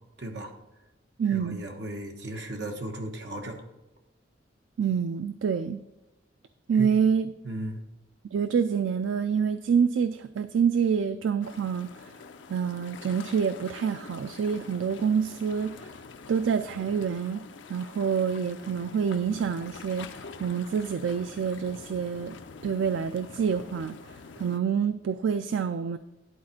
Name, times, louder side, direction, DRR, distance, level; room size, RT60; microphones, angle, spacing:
voice 1, 0.2-0.5 1.3-3.6 6.7-6.9 7.4-7.8, right 1 dB, 70° right, 2 dB, 1.3 m, -36 dB
voice 2, 1.2-1.6 4.8-5.8 6.7-7.3 8.3-12.1 12.5-15.9 16.3-17.4 17.7-22.3 22.6-26.0, right 6 dB, 90° right, 12 dB, 0.4 m, -27 dB
sound 1, 11.4-24.6, left 5 dB, 85° left, 0.6 m, -46 dB
11.0 x 4.2 x 5.9 m, 1.0 s
head